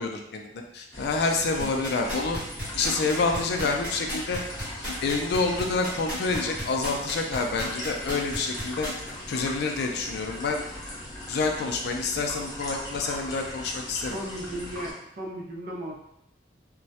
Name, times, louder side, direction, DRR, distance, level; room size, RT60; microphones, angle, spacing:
voice 1, 0.0-2.4 2.7-4.4 5.0-8.9 9.3-10.7 11.3-14.2, left 3 dB, 65° left, 3 dB, 0.3 m, -28 dB
sound 1, 0.9-14.9, left 1 dB, 20° left, 0.6 m, -39 dB
sound 2, 1.6-9.1 9.6-9.7, equal, 10° right, 1.0 m, -33 dB
voice 2, 14.1-16.0, right 1 dB, 55° right, -1 dB, 0.5 m, -36 dB
2.2 x 2.0 x 2.7 m, 0.78 s
head